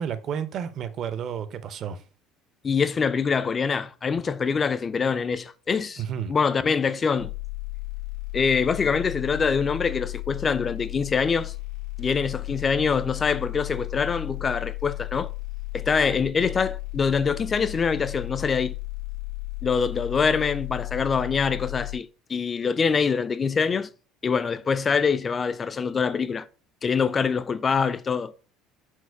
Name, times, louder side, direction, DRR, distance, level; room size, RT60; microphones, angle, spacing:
voice 1, 0.0-2.0 6.0-6.3, right 8 dB, 45° right, 0.5 m, -31 dB
voice 2, 2.6-6.0 6.3-7.3 8.3-11.5 12.0-15.3 15.7-18.7 19.6-23.9 24.2-26.5 26.8-28.3, left 5 dB, 25° left, 0.3 m, -24 dB
sound 1, 7.2-22.0, left 29 dB, 80° left, 1.5 m, -34 dB
4.4 x 2.1 x 4.4 m
cardioid pair, 120°, 0 cm